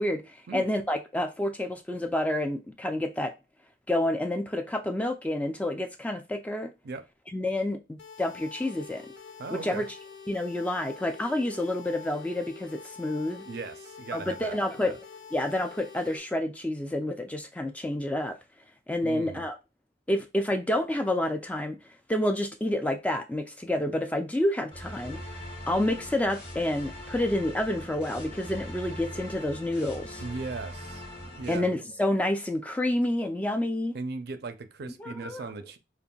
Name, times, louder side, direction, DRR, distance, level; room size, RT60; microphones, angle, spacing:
voice 1, 0.0-3.3 3.9-6.7 7.3-9.0 9.5-9.9 10.3-13.5 14.1-15.0 15.3-18.4 18.9-19.6 20.1-21.8 22.1-25.2 25.7-30.2 31.5-34.0 35.0-35.4, left 1 dB, 10° left, 0.3 m, -29 dB
sound 1, 8.0-16.2, left 6 dB, 85° left, 1.0 m, -46 dB
voice 2, 9.4-9.9 13.5-14.9 19.0-19.5 30.2-31.0 31.4-31.7 33.9-35.8, right 3 dB, 55° right, 0.5 m, -38 dB
sound 2, 24.7-31.6, left 1 dB, 30° left, 1.2 m, -41 dB
5.3 x 2.5 x 2.3 m
head